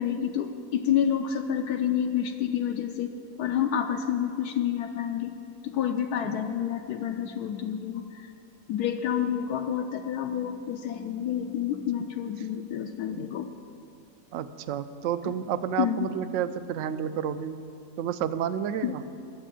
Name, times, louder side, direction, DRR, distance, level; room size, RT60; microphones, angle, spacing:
voice 1, 0.0-3.1 3.4-5.3 5.6-8.3 8.7-13.5 15.8-16.1 18.8-19.0, left 9 dB, 80° left, 5 dB, 1.1 m, -29 dB
voice 2, 14.3-17.6 18.0-19.0, right 9 dB, 70° right, 12 dB, 0.7 m, -30 dB
11.5 x 8.1 x 7.6 m, 2.6 s
omnidirectional pair, 1.7 m